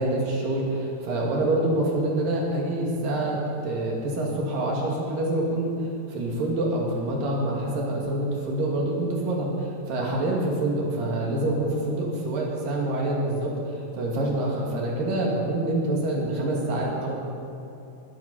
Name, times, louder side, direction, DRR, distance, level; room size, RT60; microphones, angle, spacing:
voice 1, 0.0-17.2, right 1 dB, 55° right, -2 dB, 3.7 m, -26 dB
20.0 x 12.5 x 4.3 m, 2.8 s
omnidirectional pair, 5.1 m